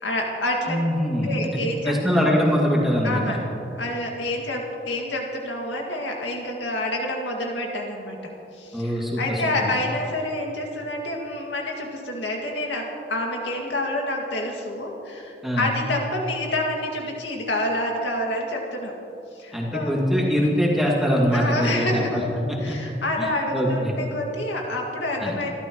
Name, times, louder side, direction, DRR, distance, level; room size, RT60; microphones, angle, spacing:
voice 1, 0.0-0.8 1.2-2.4 3.0-3.4 3.7-18.9 19.3-19.9 21.3-22.3 22.6-25.5, left 1 dB, 85° left, 0 dB, 2.2 m, -28 dB
voice 2, 0.7-1.6 1.8-3.4 8.7-9.4 15.4-15.7 19.5-22.2 22.5-22.8 23.2-23.9 25.2-25.3, equal, ahead, -4 dB, 2.3 m, -23 dB
26.5 x 12.5 x 3.1 m, 2.9 s
head